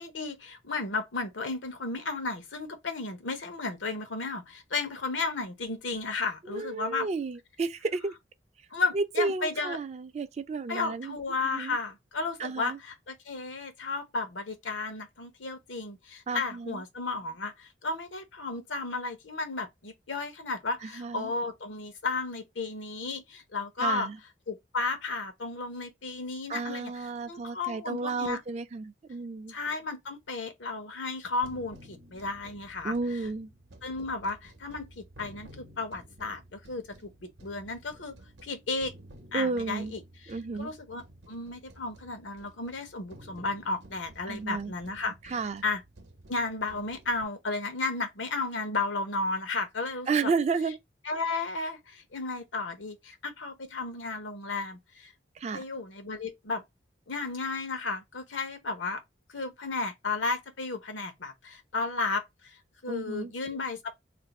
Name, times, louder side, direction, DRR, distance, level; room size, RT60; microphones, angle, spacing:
voice 1, 0.0-7.1 8.7-9.8 10.7-24.1 24.5-28.4 29.5-32.9 33.8-38.1 38.4-38.9 39.3-45.3 45.6-45.8 46.3-50.3 51.0-55.1 55.5-56.6 57.1-59.0 59.3-63.9, left 3 dB, 90° left, 0.8 m, -34 dB
voice 2, 6.5-8.1 8.9-11.1 11.5-11.8 12.4-12.8 16.3-16.8 20.8-21.3 23.8-24.2 26.5-29.5 32.8-33.5 39.3-39.9 40.3-40.7 44.3-44.7 45.3-45.6 50.1-50.8 55.4-55.6 62.9-63.3, right 4 dB, 35° right, 0.3 m, -32 dB
sound 1, 31.4-47.2, right 1 dB, 70° right, 0.7 m, -53 dB
2.5 x 2.5 x 4.0 m
head